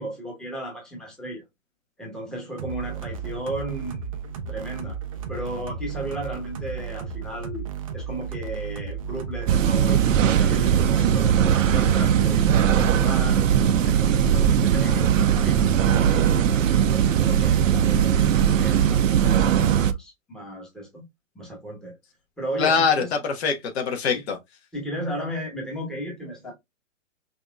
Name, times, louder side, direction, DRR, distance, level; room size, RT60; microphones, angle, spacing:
voice 1, 0.0-1.4 2.0-4.2 4.5-5.0 5.3-7.6 7.9-13.4 13.8-21.0 21.3-22.0 22.4-23.1 24.1-24.2 24.7-26.5, right 1 dB, ahead, 1.0 m, -35 dB
sound 1, 2.6-16.7, right 6 dB, 30° right, 0.4 m, -34 dB
sound 2, 9.5-19.9, right 9 dB, 70° right, 0.7 m, -19 dB
voice 2, 22.6-24.4, left 5 dB, 50° left, 1.3 m, -23 dB
5.6 x 2.8 x 2.2 m
hypercardioid pair, 145°, 40 cm